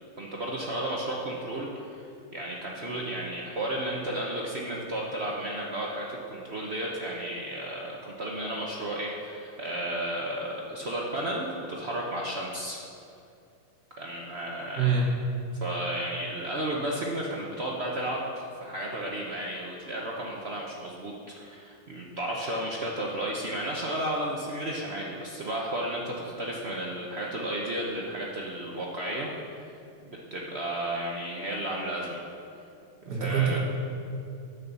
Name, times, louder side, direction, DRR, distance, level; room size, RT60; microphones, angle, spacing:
voice 1, 0.2-2.0 2.3-12.8 14.0-15.0 15.6-29.3 30.0-32.2 33.1-33.6, right 1 dB, 70° right, -3 dB, 0.6 m, -33 dB
voice 2, 14.8-15.1 33.1-33.6, right 6 dB, 50° right, -2 dB, 1.7 m, -25 dB
9.5 x 5.6 x 6.8 m, 2.5 s
omnidirectional pair, 2.4 m